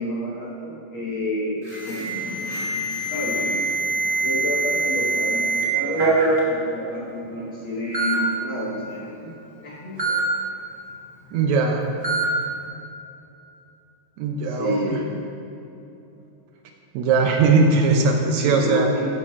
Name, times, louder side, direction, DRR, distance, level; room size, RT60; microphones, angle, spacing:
voice 1, 0.0-3.6 4.2-6.1 6.5-9.3 9.6-10.3 14.4-15.0 18.4-19.1, left 1 dB, 55° left, -6 dB, 1.5 m, -30 dB
Alarm, 1.7-5.6 6.0-6.4 7.2-7.3 7.9-8.2 10.0-10.2 12.0-12.3, right 3 dB, 55° right, 0.5 m, -23 dB
voice 2, 11.3-11.8 14.2-15.0 16.9-18.9, right 4 dB, 75° right, 2 dB, 1.8 m, -19 dB
13.0 x 4.9 x 3.1 m, 2.8 s
omnidirectional pair, 3.4 m